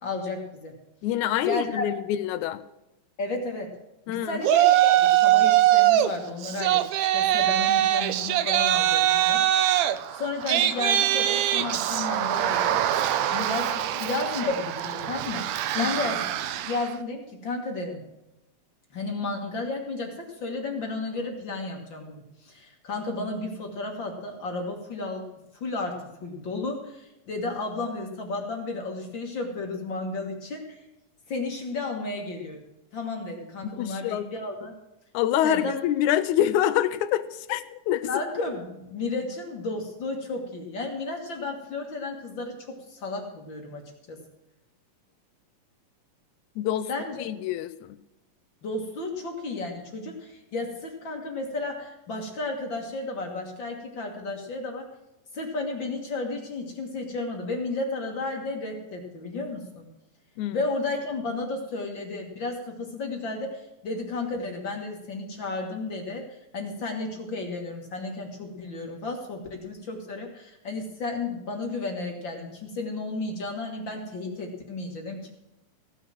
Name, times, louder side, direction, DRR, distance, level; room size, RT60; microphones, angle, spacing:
voice 1, 0.0-0.7 1.4-1.9 3.2-3.7 4.1-9.7 10.1-12.8 13.3-15.5 15.8-16.2 16.6-18.0 18.9-25.2 25.5-30.8 31.3-32.7 32.9-34.7 35.4-35.7 38.0-44.2 46.9-47.3 48.6-54.9 55.3-59.9 60.5-75.3, left 3 dB, 45° left, 2 dB, 1.7 m, -33 dB
voice 2, 1.0-2.6 4.1-4.4 15.8-16.0 33.6-34.3 35.1-38.1 46.6-46.9 47.2-48.0 60.4-60.6, left 12 dB, 80° left, 13 dB, 1.7 m, -26 dB
Yell, 4.4-6.1 6.4-16.9, right 12 dB, 85° right, 1.5 m, -23 dB
16.0 x 6.4 x 7.5 m, 0.94 s
omnidirectional pair, 3.9 m